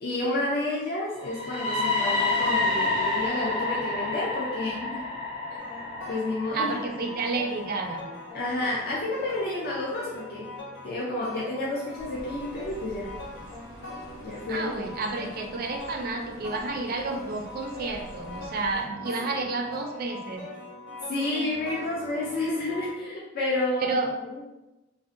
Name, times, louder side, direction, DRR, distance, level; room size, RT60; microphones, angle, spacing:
voice 1, 0.0-5.0 6.1-6.8 8.3-10.5 10.8-13.1 14.2-14.8 21.1-24.0 24.2-24.4, left 2 dB, 50° left, -6 dB, 0.4 m, -30 dB
sound 1, 1.2-9.1, left 3 dB, 30° left, 0.8 m, -29 dB
sound 2, 5.6-22.9, left 2 dB, 75° left, 1.1 m, -42 dB
voice 2, 6.5-8.1 14.5-20.4 23.9-24.1, right 3 dB, 50° right, 2 dB, 0.3 m, -30 dB
sound 3, 12.0-18.8, equal, 90° left, 1.4 m, -47 dB
2.6 x 2.0 x 2.5 m, 1.0 s
head